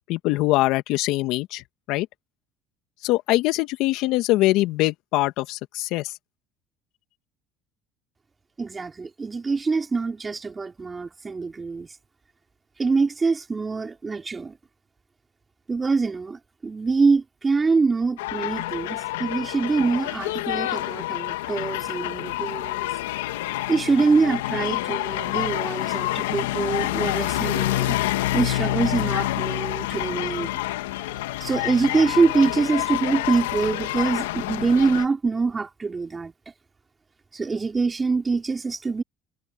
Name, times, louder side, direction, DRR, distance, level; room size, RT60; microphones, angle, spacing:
voice 1, 0.1-2.1 3.0-6.1, left 18 dB, 70° left, 2.1 m, -23 dB
voice 2, 8.6-11.9 12.8-14.5 15.7-22.9 23.7-28.0 28.3-30.5 31.4-36.3 37.3-39.0, right 4 dB, 25° right, 4.8 m, -24 dB
sound 1, 18.2-35.1, left 16 dB, 90° left, 2.1 m, -27 dB
supercardioid pair, 85°, 0 cm